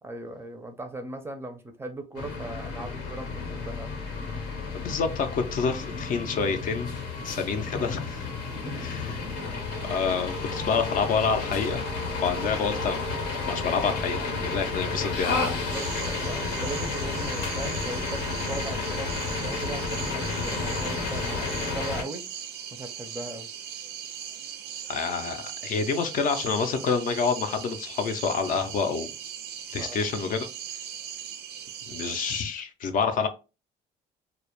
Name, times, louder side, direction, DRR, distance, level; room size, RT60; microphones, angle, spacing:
voice 1, 0.0-4.0 7.2-7.9 8.6-9.0 15.4-22.3 22.7-23.5 29.8-30.0, right 2 dB, 15° right, 6 dB, 0.4 m, -39 dB
sound 1, 2.2-22.0, left 4 dB, 90° left, 0.7 m, -31 dB
voice 2, 4.7-6.9 7.2-8.3 8.7-9.2 9.9-11.8 12.2-13.0 13.5-15.5 24.9-29.1 29.7-30.5 31.9-33.3, left 5 dB, 55° left, 7 dB, 0.4 m, -28 dB
sound 2, 15.7-32.4, right 9 dB, 75° right, 0.4 m, -39 dB
2.2 x 2.0 x 2.9 m, 0.30 s
cardioid pair, 110°, 17 cm